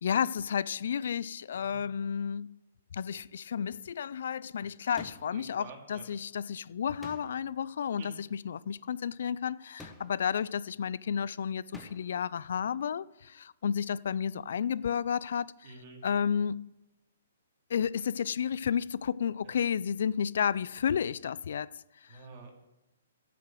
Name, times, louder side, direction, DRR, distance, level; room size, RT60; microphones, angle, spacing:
voice 1, 0.0-2.5 2.9-15.7 16.0-16.6 17.7-21.7 22.0-22.2, left 7 dB, 60° left, 0.3 m, -32 dB
voice 2, 1.5-1.8 5.3-6.1 7.9-8.1 15.6-16.0 19.4-19.7 22.1-22.6, right 4 dB, 35° right, 2.4 m, -49 dB
sound 1, 5.0-5.5 7.0-7.6 9.8-10.3 11.7-12.2, left 1 dB, 5° left, 1.1 m, -49 dB
11.0 x 6.7 x 7.7 m
hypercardioid pair, 165°, 0 cm